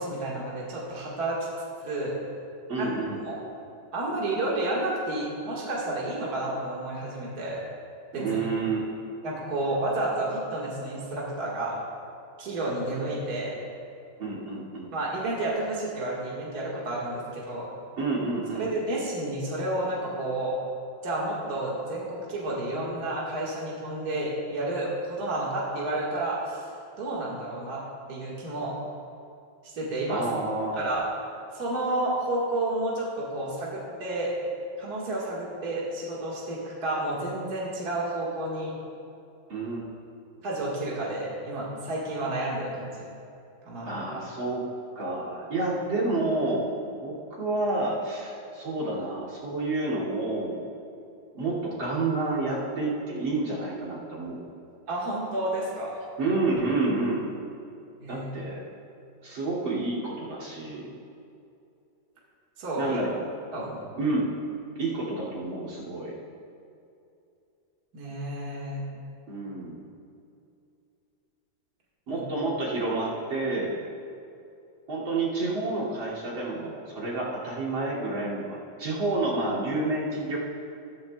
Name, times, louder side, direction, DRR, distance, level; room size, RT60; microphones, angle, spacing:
voice 1, 0.0-1.4 1.8-2.1 2.8-2.9 3.3-3.4 3.9-7.6 8.1-8.4 9.2-11.8 12.4-13.5 14.9-17.7 18.5-20.6 21.0-26.6 27.0-27.8 28.1-28.8 29.6-30.2 30.7-31.1 31.5-34.3 34.8-38.7 40.4-42.9 43.6-44.0 54.9-55.9 58.0-58.3 62.6-63.0 63.5-63.8 67.9-68.8 72.1-72.2, right 2 dB, 55° right, -5 dB, 2.2 m, -30 dB
voice 2, 2.7-3.2 8.2-8.8 14.2-14.9 18.0-18.7 30.1-30.8 39.5-39.8 43.8-44.6 45.0-50.6 51.3-54.4 56.2-57.2 58.1-58.6 59.2-60.9 62.8-63.2 64.0-64.3 64.8-66.2 69.3-69.8 72.1-73.7 74.9-80.4, right 2 dB, 85° right, -6 dB, 3.4 m, -29 dB
14.5 x 14.0 x 2.3 m, 2.6 s
omnidirectional pair, 2.1 m